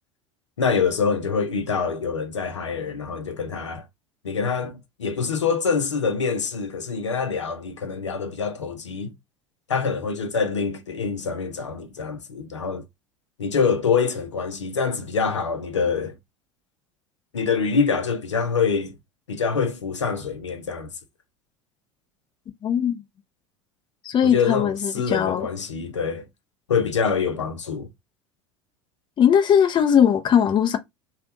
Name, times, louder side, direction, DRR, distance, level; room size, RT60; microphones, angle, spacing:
voice 1, 0.6-3.8 4.2-9.1 9.7-12.8 13.4-16.2 17.3-18.9 19.3-20.9 24.2-26.3 26.7-27.9, left 5 dB, 80° left, 0.7 m, -25 dB
voice 2, 22.6-23.0 24.0-25.5 29.2-30.8, left 8 dB, 30° left, 0.7 m, -19 dB
3.3 x 2.4 x 4.0 m
figure-of-eight pair, 70°, 15 cm